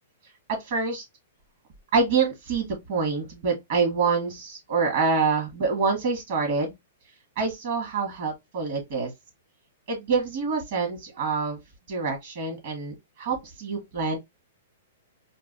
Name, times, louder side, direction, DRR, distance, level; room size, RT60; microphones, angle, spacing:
voice 1, 0.5-1.0 1.9-6.7 7.4-9.1 9.9-11.6 11.9-14.2, right 4 dB, 50° right, 1.9 m, -26 dB
4.6 x 2.5 x 2.6 m
hypercardioid pair, 160°, 0 cm